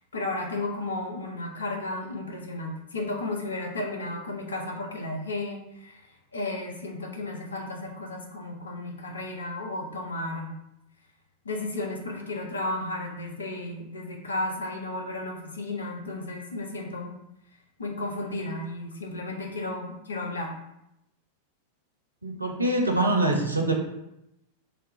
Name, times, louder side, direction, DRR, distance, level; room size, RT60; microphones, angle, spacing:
voice 1, 0.1-6.0 6.3-10.5 11.4-17.1 17.8-20.5, left 2 dB, 75° left, 1 dB, 0.6 m, -33 dB
voice 2, 22.2-23.7, right 1 dB, 85° right, 2 dB, 0.5 m, -24 dB
3.1 x 2.3 x 2.9 m, 0.84 s
figure-of-eight pair, 90°, 0 cm